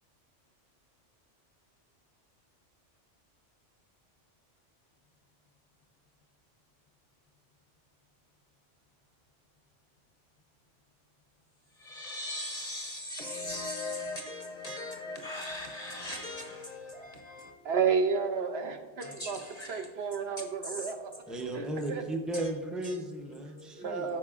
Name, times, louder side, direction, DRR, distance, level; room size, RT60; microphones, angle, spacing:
voice 1, 11.7-17.5 19.0-20.1 20.4-20.9 22.3-22.5 22.8-23.0 23.3-24.2, left 1 dB, 40° left, 2 dB, 0.7 m, -40 dB
voice 2, 17.6-19.4 19.7-21.2 21.5-22.0 23.7-24.2, right 5 dB, 65° right, 7 dB, 0.8 m, -31 dB
voice 3, 21.3-24.2, right 1 dB, ahead, 3 dB, 0.5 m, -35 dB
13.5 x 4.7 x 2.4 m, 1.3 s
omnidirectional pair, 1.2 m